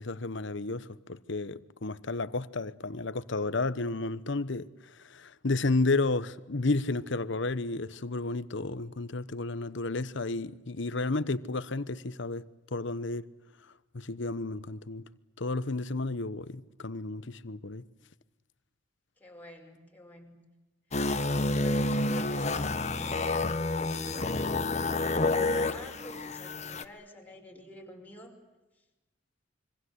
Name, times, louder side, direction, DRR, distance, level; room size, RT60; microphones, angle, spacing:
voice 1, 0.0-13.3 13.9-15.1 15.4-17.9, left 3 dB, 65° left, 1.0 m, -32 dB
voice 2, 19.2-20.3 21.2-23.9 24.8-28.3, left 1 dB, 10° left, 5.5 m, -49 dB
sound 1, 20.9-26.8, left 2 dB, 35° left, 1.3 m, -29 dB
26.5 x 24.5 x 8.1 m
head